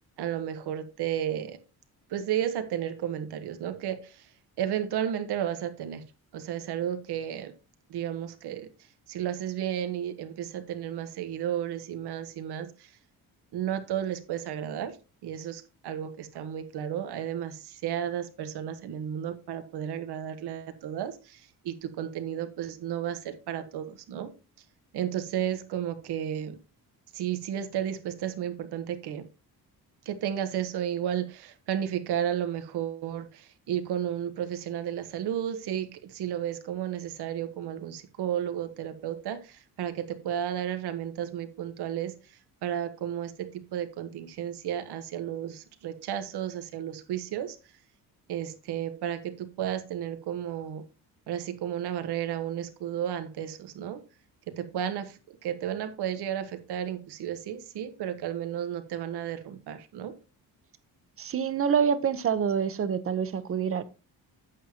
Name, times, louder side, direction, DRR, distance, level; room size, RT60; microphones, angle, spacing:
voice 1, 0.2-1.6 2.1-4.3 4.6-6.0 6.3-7.5 7.9-8.7 9.1-12.9 13.5-15.0 15.2-24.3 24.9-26.6 27.1-29.3 30.0-47.6 48.3-50.8 51.3-54.0 54.5-60.1, right 10 dB, 85° right, 1.4 m, -33 dB
voice 2, 61.2-63.8, right 7 dB, 35° right, 0.8 m, -26 dB
9.1 x 8.4 x 2.9 m
cardioid pair, 165°, 38 cm